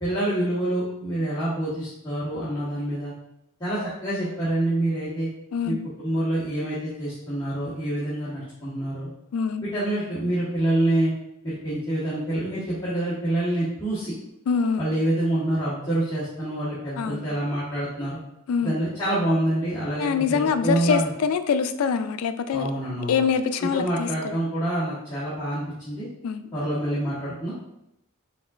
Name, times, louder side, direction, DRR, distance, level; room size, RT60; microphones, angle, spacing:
voice 1, 0.0-3.1 3.6-5.3 5.6-9.1 9.6-11.1 11.4-14.1 14.8-18.2 18.6-21.1 22.5-23.2 23.7-26.1 26.5-27.5, right 1 dB, 20° left, -12 dB, 1.2 m, -26 dB
voice 2, 5.5-5.9 9.3-9.6 14.5-14.8 17.0-17.3 18.5-18.8 20.0-22.7 23.1-24.4 26.2-26.4, left 6 dB, 85° left, 10 dB, 0.4 m, -24 dB
5.2 x 3.6 x 2.4 m, 0.83 s
head